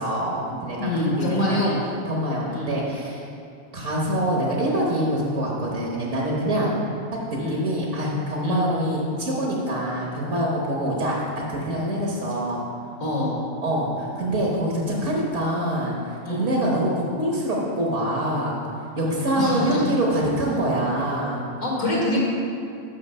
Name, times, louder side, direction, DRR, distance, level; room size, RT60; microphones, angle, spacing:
voice 1, 0.0-0.9 1.2-1.6 2.1-3.2 3.7-6.7 7.3-11.2 11.5-12.6 13.6-15.9 16.3-18.5 19.0-21.4, right 1 dB, 65° right, -3 dB, 1.5 m, -25 dB
voice 2, 0.8-1.8 2.5-2.8 7.4-7.7 8.4-8.7 13.0-13.4 16.2-16.5 19.4-19.8 21.6-22.2, left 1 dB, 90° left, -5 dB, 2.1 m, -25 dB
6.5 x 5.5 x 6.5 m, 2.5 s
omnidirectional pair, 1.3 m